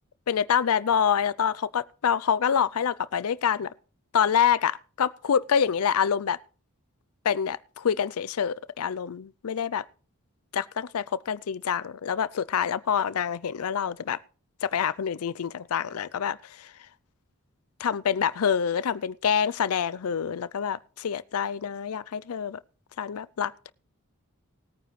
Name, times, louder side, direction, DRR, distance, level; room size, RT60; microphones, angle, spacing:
voice 1, 0.3-3.7 4.1-6.4 7.2-9.8 10.5-14.2 14.6-16.7 17.8-22.6 23.0-23.7, left 7 dB, 85° left, 0.5 m, -26 dB
19.5 x 9.3 x 3.2 m
head